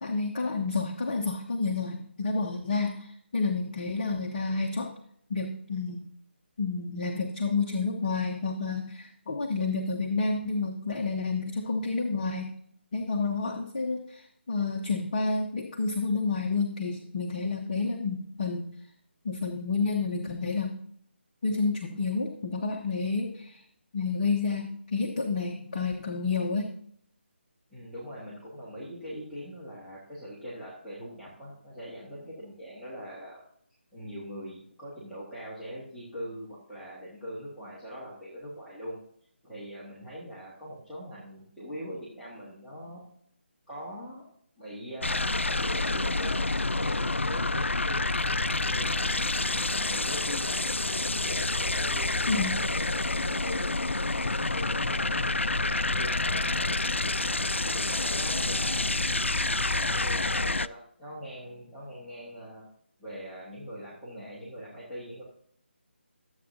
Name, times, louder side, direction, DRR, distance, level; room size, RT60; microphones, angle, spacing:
voice 1, 0.0-4.9 5.3-6.1 6.6-12.6 12.9-18.7 19.2-20.8 21.4-23.6 23.9-26.7 52.3-52.6, left 4 dB, 35° left, 1 dB, 1.0 m, -30 dB
voice 2, 27.7-33.4 33.9-39.0 39.4-43.0 43.7-44.3 44.6-46.5 46.7-49.2 49.6-50.6 51.1-53.8 54.2-57.0 57.7-59.0 59.7-62.7 63.0-65.2, equal, ahead, -13 dB, 1.8 m, -42 dB
sound 1, 45.0-60.7, left 2 dB, 85° left, 0.3 m, -28 dB
13.0 x 8.0 x 2.7 m, 0.66 s
figure-of-eight pair, 150°, 6 cm